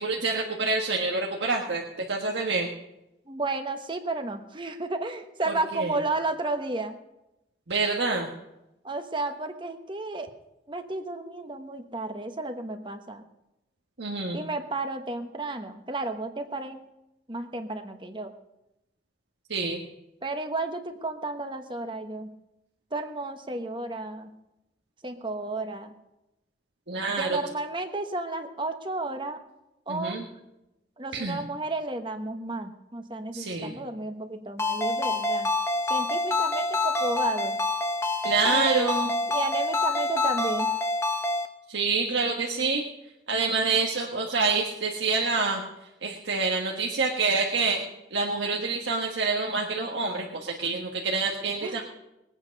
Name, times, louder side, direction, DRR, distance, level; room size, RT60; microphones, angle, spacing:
voice 1, 0.0-2.7 5.7-5.9 7.7-8.3 14.0-14.4 19.5-19.8 26.9-27.4 29.9-30.2 31.1-31.4 33.3-33.7 38.2-39.1 41.7-42.8 43.3-45.6 46.0-47.8 48.1-51.8, right 4 dB, 85° right, -1 dB, 1.5 m, -27 dB
voice 2, 3.3-7.0 8.8-10.3 10.7-13.2 14.3-16.8 17.3-18.3 20.2-22.3 22.9-24.3 25.0-25.9 27.2-29.4 29.9-30.2 31.0-35.5 35.9-37.6 38.4-38.9 39.3-40.7 51.6-51.8, right 2 dB, 25° right, 7 dB, 1.1 m, -32 dB
Ringtone, 34.6-41.5, left 2 dB, 15° left, 0.9 m, -27 dB
21.0 x 8.9 x 5.3 m, 0.92 s
head